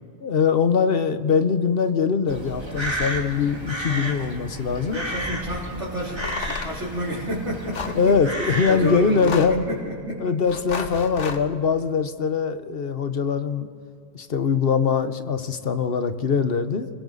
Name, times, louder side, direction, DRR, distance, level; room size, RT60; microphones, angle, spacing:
voice 1, 0.2-5.0 7.9-9.7 10.2-13.7 14.1-16.9, left 5 dB, 55° left, 10 dB, 1.1 m, -22 dB
Crow, 2.3-9.1, right 1 dB, 20° right, 2.3 m, -32 dB
voice 2, 4.9-10.3 10.7-10.9, equal, 75° right, -8 dB, 4.2 m, -30 dB
sound 1, 6.2-6.8 7.7-8.0 9.1-9.7 10.5-11.4, left 5 dB, 80° left, 1.5 m, -32 dB
29.5 x 21.5 x 4.1 m, 2.4 s
omnidirectional pair, 1.2 m